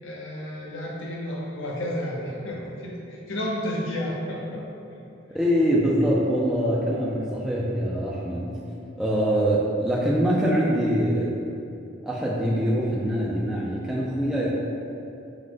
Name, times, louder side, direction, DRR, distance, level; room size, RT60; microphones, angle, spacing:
voice 1, 0.0-5.0, left 1 dB, 85° left, -3 dB, 0.7 m, -32 dB
voice 2, 5.3-8.6 9.0-11.3 12.0-14.5, equal, 5° right, -6 dB, 0.3 m, -24 dB
4.9 x 2.1 x 3.7 m, 2.7 s
head